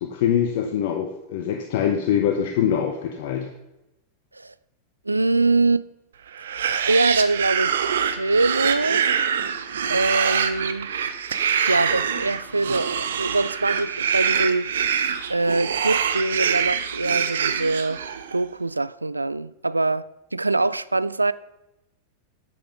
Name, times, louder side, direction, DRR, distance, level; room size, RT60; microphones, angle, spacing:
voice 1, 0.0-3.5, left 9 dB, 50° left, 1.0 m, -23 dB
voice 2, 5.1-5.9 6.8-9.1 9.9-10.9 11.7-14.7 15.3-18.0 18.3-21.3, right 2 dB, 80° right, 0.3 m, -23 dB
sound 1, 6.3-18.4, right 7 dB, 65° right, 0.7 m, -25 dB
10.0 x 7.7 x 5.2 m
figure-of-eight pair, 90°, 0 cm